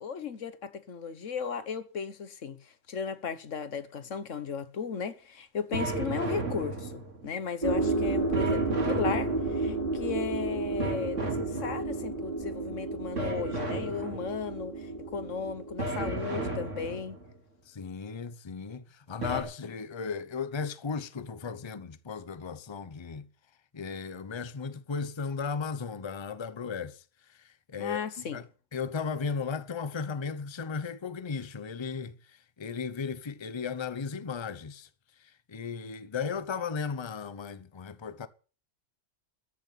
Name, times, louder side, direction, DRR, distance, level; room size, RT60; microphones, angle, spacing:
voice 1, 0.0-2.6 2.9-17.2 27.8-28.4, left 6 dB, 85° left, 1.6 m, -36 dB
sound 1, 5.7-7.3 8.3-9.8 10.8-12.1 13.2-14.5 15.8-17.3 19.2-19.4, right 2 dB, 80° right, 3.0 m, -34 dB
sound 2, 7.6-15.8, right 3 dB, 40° right, 4.4 m, -31 dB
voice 2, 17.7-23.3 23.7-27.0 27.3-28.4 28.7-34.9 35.2-38.3, left 5 dB, 25° left, 0.8 m, -36 dB
14.0 x 7.1 x 8.5 m
omnidirectional pair, 1.3 m